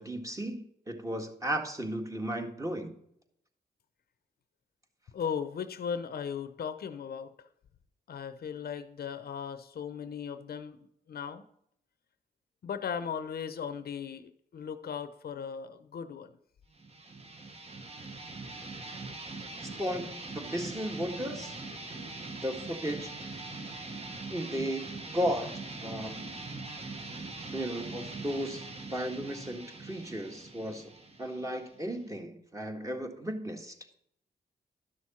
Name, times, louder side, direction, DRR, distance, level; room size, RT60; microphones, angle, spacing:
voice 1, 0.0-2.9 19.8-21.6 22.4-23.1 24.3-25.5 25.8-26.3 27.5-30.9 31.2-33.7, equal, 20° right, 3 dB, 1.7 m, -35 dB
voice 2, 5.1-7.3 8.1-10.8 11.1-11.4 12.6-16.3, left 7 dB, 70° left, 11 dB, 0.7 m, -37 dB
sound 1, 16.7-32.2, right 3 dB, 40° right, 1.4 m, -42 dB
11.0 x 6.4 x 4.2 m, 0.72 s
cardioid pair, 65°, 17 cm